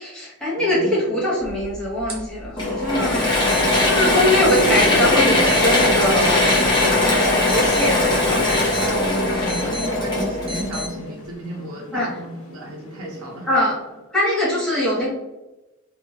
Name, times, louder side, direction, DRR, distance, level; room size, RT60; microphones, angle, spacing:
voice 1, 0.0-3.4 3.8-6.3 6.7-8.9 9.6-9.9 11.9-12.1 13.5-13.7 14.1-15.1, left 1 dB, 5° left, -9 dB, 1.2 m, -23 dB
voice 2, 0.5-1.0 4.0-4.2 8.8-13.6, right 1 dB, 75° right, -2 dB, 0.6 m, -32 dB
sound 1, 1.4-10.9, equal, 25° right, 0.6 m, -36 dB
Mechanisms / Drill, 2.6-11.2, left 2 dB, 20° left, 0.7 m, -20 dB
Thunder / Rain, 3.5-14.0, equal, 75° left, 0.8 m, -34 dB
2.6 x 2.6 x 2.9 m, 1.0 s
head